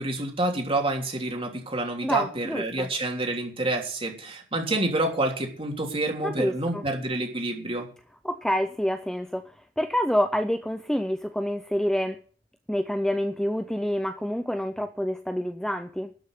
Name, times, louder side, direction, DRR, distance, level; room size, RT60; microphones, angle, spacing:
voice 1, 0.0-7.9, right 2 dB, 30° right, 2 dB, 3.2 m, -28 dB
voice 2, 2.0-2.9 6.2-6.8 8.2-12.2 12.7-16.1, equal, 5° left, 8 dB, 0.5 m, -27 dB
12.5 x 6.6 x 9.8 m, 0.43 s
head